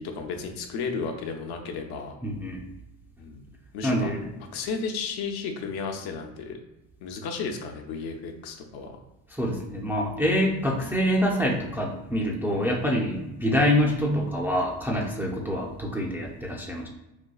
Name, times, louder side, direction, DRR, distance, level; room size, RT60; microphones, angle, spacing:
voice 1, 0.0-2.2 3.2-3.5 3.7-4.1 4.5-6.6 7.0-9.0 10.8-11.0, left 5 dB, 55° left, 4 dB, 0.7 m, -33 dB
voice 2, 2.2-2.6 3.8-4.3 9.3-16.9, equal, 5° right, -2 dB, 0.5 m, -26 dB
4.3 x 2.3 x 2.3 m, 0.97 s
hypercardioid pair, 70°, 47 cm